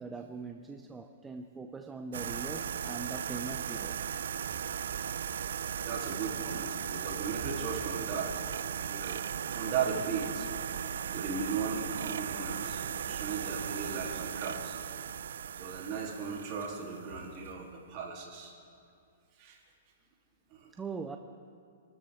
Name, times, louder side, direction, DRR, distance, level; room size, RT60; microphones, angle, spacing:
voice 1, 0.0-4.1 20.8-21.2, right 4 dB, 10° right, 5 dB, 0.5 m, -41 dB
sound 1, 2.1-17.5, right 8 dB, 75° right, 0.4 m, -37 dB
voice 2, 5.8-9.2 9.5-10.5 11.1-14.8 15.6-18.5 19.4-19.6 20.5-20.7, right 5 dB, 30° right, -3 dB, 3.2 m, -37 dB
26.5 x 13.5 x 3.6 m, 2.4 s
hypercardioid pair, 160°, 0 cm